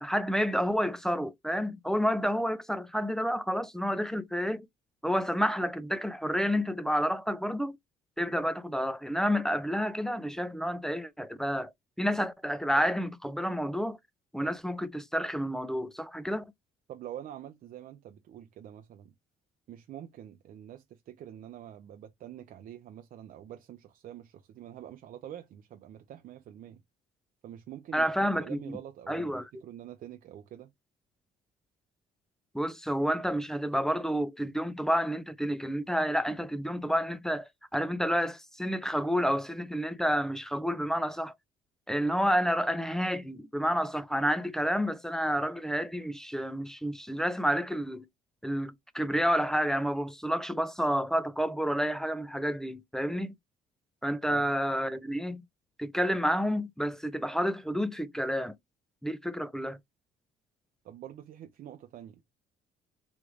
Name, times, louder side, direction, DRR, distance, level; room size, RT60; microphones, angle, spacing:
voice 1, 0.0-4.7 5.0-7.8 8.2-11.7 12.0-14.0 14.3-16.4 27.9-28.8 29.1-29.5 32.5-41.3 41.9-48.1 48.4-53.3 54.0-55.4 55.8-58.6 59.0-59.8, equal, 5° left, 0.3 m, -30 dB
voice 2, 16.9-19.1 19.7-26.8 27.4-30.7 54.3-54.5 60.8-62.2, right 11 dB, 55° right, 0.5 m, -46 dB
3.1 x 2.4 x 3.1 m
cardioid pair, 110°, 17 cm